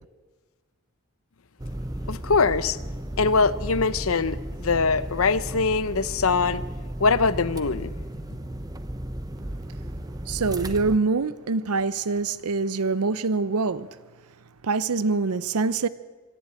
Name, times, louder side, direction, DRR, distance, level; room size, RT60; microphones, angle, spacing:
sound 1, 1.6-11.0, right 1 dB, 15° right, 0.9 m, -34 dB
voice 1, 2.1-2.8 3.2-6.6 7.0-7.9, left 4 dB, 65° left, 0.8 m, -22 dB
voice 2, 10.3-13.9 14.6-15.9, right 4 dB, 85° right, 0.7 m, -25 dB
25.5 x 11.5 x 8.9 m
head